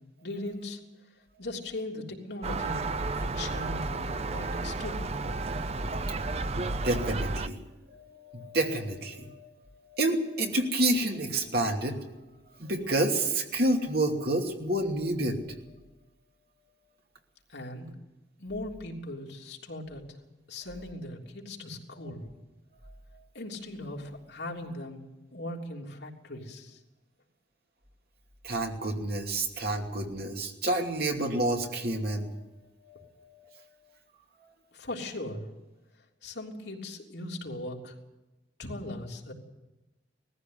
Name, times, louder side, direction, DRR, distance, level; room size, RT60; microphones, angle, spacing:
voice 1, 0.2-0.8 1.4-2.9 3.2-5.1 17.5-17.9 18.4-20.2 20.5-22.2 23.3-25.0 25.3-26.8 34.7-35.5 36.2-37.9 38.6-39.3, left 1 dB, 70° left, -1 dB, 3.4 m, -39 dB
Gull seagull, 2.4-7.5, right 3 dB, 35° right, 0.7 m, -32 dB
voice 2, 6.6-7.6 7.9-12.0 12.6-15.4 22.0-22.1 28.4-32.4 32.9-33.6, right 1 dB, 60° right, 2 dB, 2.7 m, -29 dB
19.5 x 14.5 x 9.4 m, 1.1 s
head